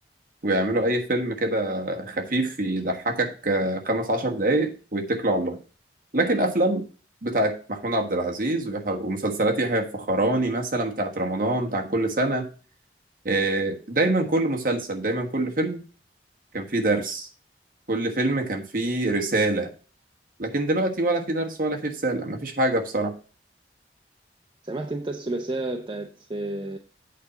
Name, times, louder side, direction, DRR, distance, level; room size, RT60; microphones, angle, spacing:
voice 1, 0.4-5.6 6.1-6.9 7.2-12.5 13.2-15.8 16.5-17.3 17.9-19.7 20.4-23.1, right 2 dB, 50° right, 1.4 m, -25 dB
voice 2, 24.6-26.8, right 2 dB, 25° right, 0.6 m, -31 dB
8.5 x 4.2 x 6.8 m
head